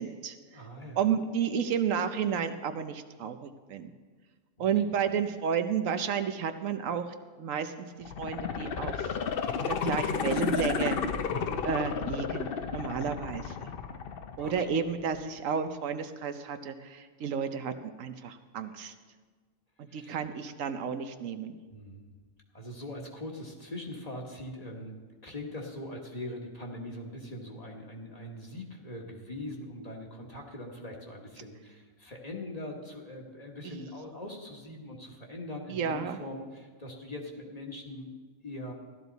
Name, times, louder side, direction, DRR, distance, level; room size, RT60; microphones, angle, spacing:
voice 1, 0.0-0.3 1.0-3.9 4.6-7.0 7.4-7.9 8.2-9.1 9.8-11.0 11.6-13.7 14.4-17.7 18.0-18.9 19.9-21.5 33.6-33.7 35.7-36.2, right 7 dB, 75° right, 9 dB, 1.1 m, -31 dB
voice 2, 0.5-1.1 4.6-4.7 11.3-11.7 14.3-14.8 19.9-20.3 21.7-22.1 22.5-38.1 38.4-38.7, left 1 dB, 30° left, 0 dB, 1.5 m, -42 dB
sound 1, 8.0-15.0 15.4-15.5, left 6 dB, 55° left, 0.7 m, -32 dB
14.5 x 12.0 x 4.0 m, 1.4 s
omnidirectional pair, 1.4 m